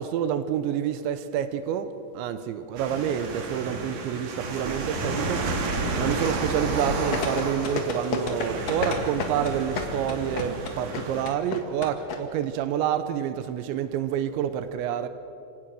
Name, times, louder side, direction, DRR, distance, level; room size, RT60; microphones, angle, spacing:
voice 1, 0.0-5.5 6.0-15.1, right 9 dB, 80° right, 2.9 m, -28 dB
sound 1, 2.8-11.3, right 2 dB, 50° right, 2.7 m, -31 dB
sound 2, 7.1-12.2 12.4-12.5, left 5 dB, 70° left, 1.6 m, -30 dB
28.0 x 17.0 x 6.4 m
omnidirectional pair, 5.9 m